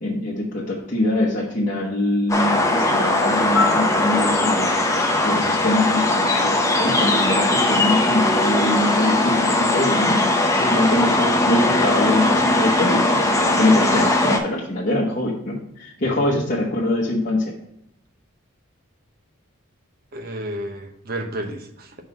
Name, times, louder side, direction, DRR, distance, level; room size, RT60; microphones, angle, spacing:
voice 1, 0.0-4.7 5.2-10.2 10.7-13.0 13.4-17.5, left 1 dB, 40° left, -5 dB, 1.0 m, -23 dB
sound 1, 2.3-14.4, left 2 dB, 15° left, 0.7 m, -19 dB
Piano, 3.5-6.5 14.6-14.8, left 4 dB, 70° left, 0.4 m, -30 dB
voice 2, 10.5-11.0 13.9-14.0 16.0-16.4 20.1-22.0, right 1 dB, 45° right, 5 dB, 0.9 m, -32 dB
5.4 x 3.9 x 5.8 m, 0.80 s
head